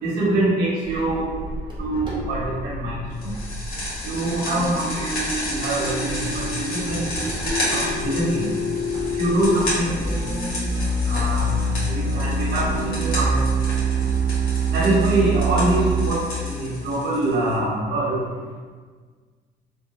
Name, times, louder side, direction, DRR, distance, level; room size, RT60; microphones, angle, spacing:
voice 1, 0.0-1.3 1.8-3.3 4.0-5.1 5.5-6.4 6.7-7.0 7.7-8.5 9.2-10.0 11.1-11.6 11.9-13.4 14.7-18.2, right 1 dB, 75° right, -6 dB, 1.1 m, -24 dB
sound 1, 0.8-16.1, right 2 dB, 25° right, 0.9 m, -26 dB
sound 2, 3.2-17.5, left 1 dB, 60° left, 1.4 m, -32 dB
3.2 x 2.2 x 3.1 m, 1.5 s
cardioid pair, 110°, 17 cm